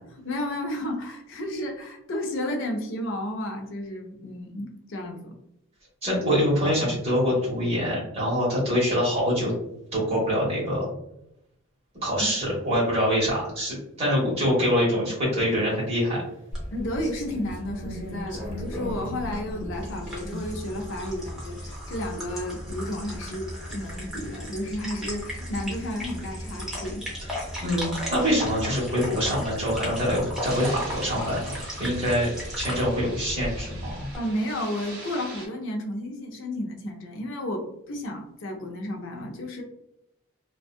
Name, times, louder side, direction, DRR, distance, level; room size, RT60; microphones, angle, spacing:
voice 1, 0.2-5.4 12.2-12.4 16.7-27.1 34.2-39.6, left 1 dB, 60° left, 2 dB, 0.4 m, -32 dB
voice 2, 6.0-9.5 9.9-10.9 12.0-16.2 27.6-31.5 31.8-32.3 32.5-34.1, equal, 30° right, -6 dB, 1.2 m, -25 dB
sound 1, 16.1-16.2 16.9-20.5 21.3-21.4 22.1-22.2 22.8-22.9 23.6-23.7 24.3-24.4 25.1-25.8 26.3-26.7, left 1 dB, 35° left, 1.1 m, -40 dB
sound 2, 16.5-34.2, equal, 5° right, 0.6 m, -36 dB
sound 3, 30.5-35.5, right 2 dB, 50° right, 1.3 m, -42 dB
2.6 x 2.3 x 2.3 m, 0.80 s
head